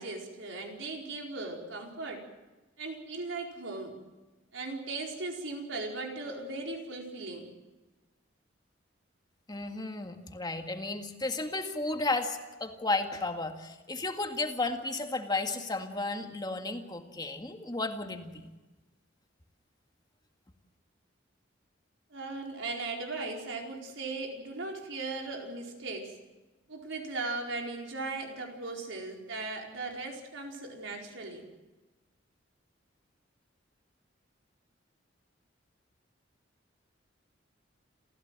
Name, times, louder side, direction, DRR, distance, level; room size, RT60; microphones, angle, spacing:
voice 1, 0.0-2.2 2.8-4.0 4.5-7.5 22.1-26.1 26.7-31.4, right 3 dB, 80° right, 1 dB, 4.7 m, -38 dB
voice 2, 9.5-18.5, left 2 dB, 20° left, 5 dB, 1.9 m, -33 dB
28.5 x 15.5 x 7.7 m, 1.2 s
head